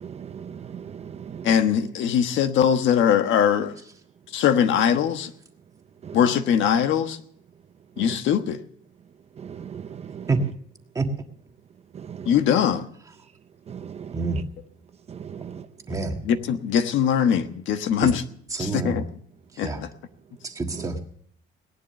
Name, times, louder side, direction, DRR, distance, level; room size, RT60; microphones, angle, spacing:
voice 1, 0.0-1.5 6.0-6.2 9.5-10.2 12.1-12.3 13.7-14.1 15.1-15.6, right 8 dB, 30° right, 0.6 m, -38 dB
voice 2, 1.4-3.7 4.3-5.3 6.1-7.2 8.0-8.6 12.3-12.9 16.2-18.2 18.6-19.0 19.6-19.9, left 8 dB, 65° left, 1.3 m, -21 dB
voice 3, 15.9-16.2 18.0-18.1 18.5-19.0 19.5-19.8 20.4-21.0, right 3 dB, 15° right, 1.6 m, -27 dB
18.5 x 11.0 x 6.7 m
cardioid pair, 165°, 21 cm